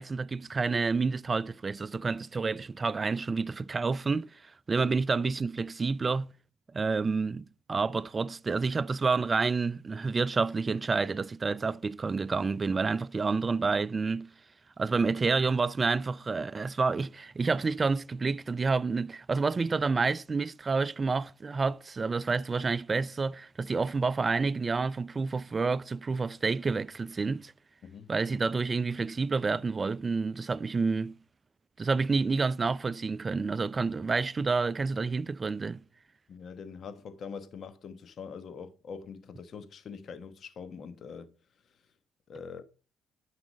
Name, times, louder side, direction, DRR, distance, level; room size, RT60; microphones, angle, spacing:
voice 1, 0.0-6.3 6.7-14.3 14.8-27.5 28.1-31.2 31.8-35.8, right 4 dB, 35° right, 0.4 m, -29 dB
voice 2, 27.8-28.1 36.3-41.3 42.3-42.6, left 6 dB, 55° left, 1.1 m, -43 dB
9.8 x 4.9 x 5.2 m
hypercardioid pair, 55°, 0 cm